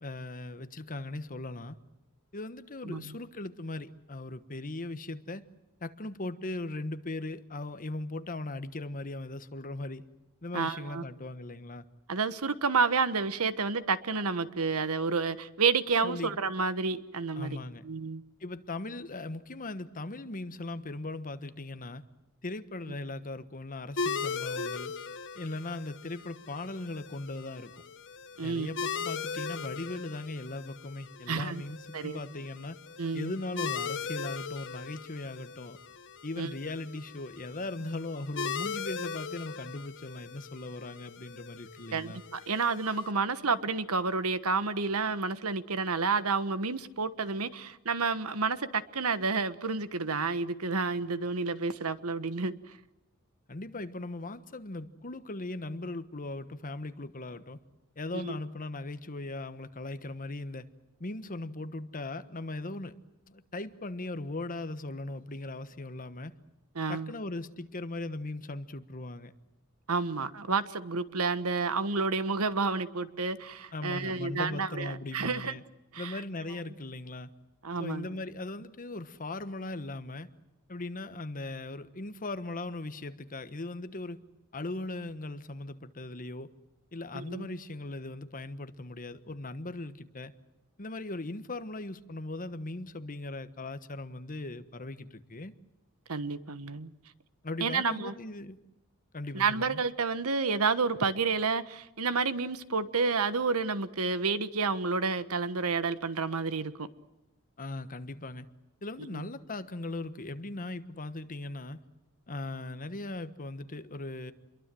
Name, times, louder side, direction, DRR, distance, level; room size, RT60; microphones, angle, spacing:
voice 1, 0.0-1.8 2.3-5.4 5.8-10.0 10.4-11.9 16.0-16.4 17.3-17.8 18.4-22.0 22.4-24.9 25.3-27.7 28.4-32.8 33.1-35.8 36.2-42.2 53.5-57.6 58.0-60.7 61.0-62.9 63.3-66.3 66.9-69.3 73.7-75.6 76.0-77.3 77.8-80.3 80.7-84.2 84.5-86.5 86.9-90.3 90.8-95.5 97.4-98.6 99.1-99.8 107.6-108.5 108.8-111.8 112.3-114.3, left 2 dB, 40° left, 1.3 m, -39 dB
voice 2, 10.5-11.0 12.1-17.6 17.8-18.2 28.4-28.8 31.3-31.6 31.9-32.2 33.0-33.3 36.4-36.5 41.9-52.5 58.1-58.3 66.7-67.1 69.9-75.5 75.9-76.2 77.6-78.1 87.1-87.5 96.1-96.9 97.6-98.1 99.3-106.9 109.1-109.3, right 4 dB, 75° right, 1.3 m, -30 dB
sound 1, 24.0-43.1, left 5 dB, 55° left, 1.1 m, -39 dB
28.0 x 22.5 x 7.7 m
head